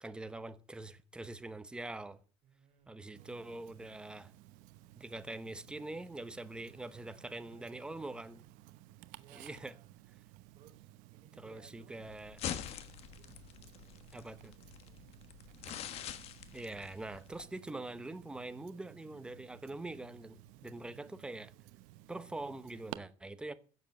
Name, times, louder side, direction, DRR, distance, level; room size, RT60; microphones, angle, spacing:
voice 1, 0.0-2.2 2.9-4.3 4.9-8.4 9.3-9.8 11.4-12.4 14.1-14.5 16.5-21.5 22.1-23.5, right 2 dB, 5° right, 0.8 m, -44 dB
voice 2, 2.4-3.6 7.0-8.4 9.1-9.9 10.5-12.1 13.1-14.0 14.5-15.1 20.5-21.1, right 8 dB, 45° right, 5.3 m, -64 dB
Tick-tock, 3.2-23.0, right 16 dB, 80° right, 0.9 m, -55 dB
sound 1, 12.0-17.4, left 10 dB, 50° left, 1.3 m, -45 dB
16.0 x 7.4 x 7.7 m
cardioid pair, 165°, 14 cm